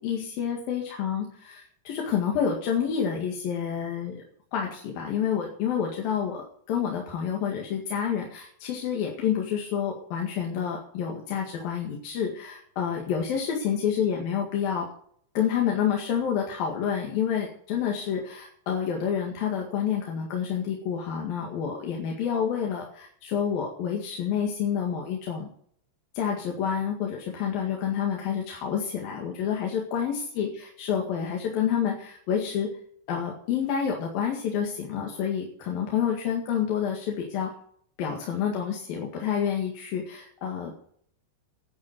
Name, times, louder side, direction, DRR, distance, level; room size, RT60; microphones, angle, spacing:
voice 1, 0.0-4.2 4.5-14.9 15.3-25.5 26.1-32.8 33.1-37.5 38.0-40.8, left 8 dB, 55° left, 0 dB, 3.1 m, -28 dB
10.5 x 10.0 x 8.0 m, 0.62 s
omnidirectional pair, 5.9 m